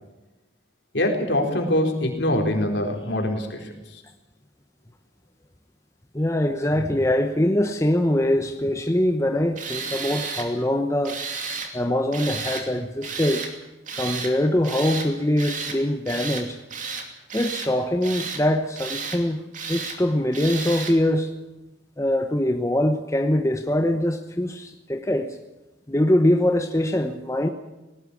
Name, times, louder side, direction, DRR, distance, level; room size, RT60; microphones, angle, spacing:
voice 1, 0.9-3.7, left 1 dB, 70° left, 2 dB, 4.3 m, -23 dB
voice 2, 6.1-11.2 11.7-13.4 14.0-16.6 17.3-21.3 22.0-25.4 25.9-27.5, left 1 dB, 15° left, 6 dB, 0.9 m, -23 dB
Tools, 9.6-10.5 11.0-11.7 12.1-12.7 13.0-13.5 13.9-14.3 14.6-15.1 15.4-15.8 16.1-16.5 16.7-17.7 18.0-18.4 18.8-19.2 19.5-20.0 20.3-21.0, right 5 dB, 45° right, 2.7 m, -32 dB
19.5 x 18.0 x 8.4 m, 1.1 s
head